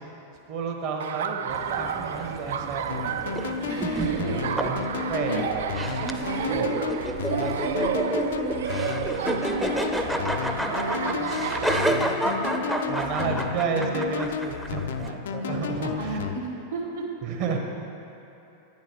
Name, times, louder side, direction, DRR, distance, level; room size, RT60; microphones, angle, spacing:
voice 1, 0.5-3.1 4.6-6.0 6.5-6.7 12.9-16.2 17.2-17.6, right 5 dB, 45° right, 2 dB, 1.1 m, -31 dB
Laughter, 1.0-11.9, right 8 dB, 60° right, 0.3 m, -32 dB
sound 1, 1.5-15.1, right 1 dB, 5° right, 0.5 m, -30 dB
sound 2, 2.9-16.4, left 7 dB, 60° left, 0.4 m, -33 dB
voice 2, 3.7-4.6 5.2-5.4 6.0-6.7 7.2-13.5 15.4-17.1, right 3 dB, 75° right, -5 dB, 1.5 m, -35 dB
10.5 x 9.4 x 3.0 m, 3.0 s
figure-of-eight pair, 90°, 0 cm